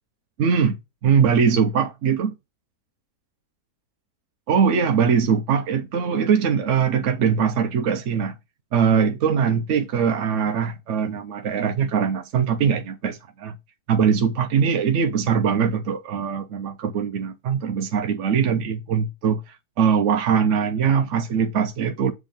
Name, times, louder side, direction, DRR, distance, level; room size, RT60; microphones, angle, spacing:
voice 1, 0.4-0.8 1.0-2.3 4.5-8.4 8.7-13.6 13.9-22.1, right 7 dB, 60° right, 0.8 m, -21 dB
7.3 x 3.5 x 5.2 m
omnidirectional pair, 1.8 m